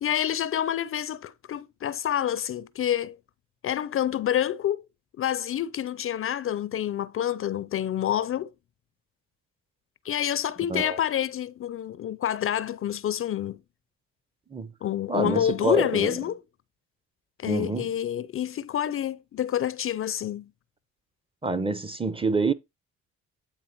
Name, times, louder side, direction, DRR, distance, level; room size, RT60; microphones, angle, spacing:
voice 1, 0.0-3.2 3.6-4.9 5.2-8.5 10.0-13.6 14.8-16.4 17.4-20.5, left 10 dB, 45° left, 0.4 m, -28 dB
voice 2, 15.1-16.1 17.5-17.9 21.4-22.5, right 3 dB, 20° right, 0.6 m, -27 dB
8.9 x 3.3 x 4.4 m
cardioid pair, 90°, 30 cm